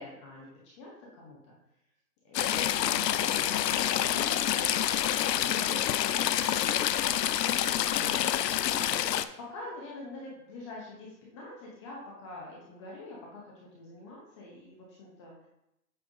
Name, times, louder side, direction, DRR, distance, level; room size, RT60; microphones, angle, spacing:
voice 1, 0.0-1.5 2.2-6.7 7.8-9.3 9.5-15.3, left 2 dB, 20° left, -3 dB, 0.8 m, -46 dB
Stream / Trickle dribble, 2.3-9.2, left 11 dB, 85° left, 0.6 m, -27 dB
8.0 x 5.7 x 2.7 m, 0.84 s
hypercardioid pair, 155°, 48 cm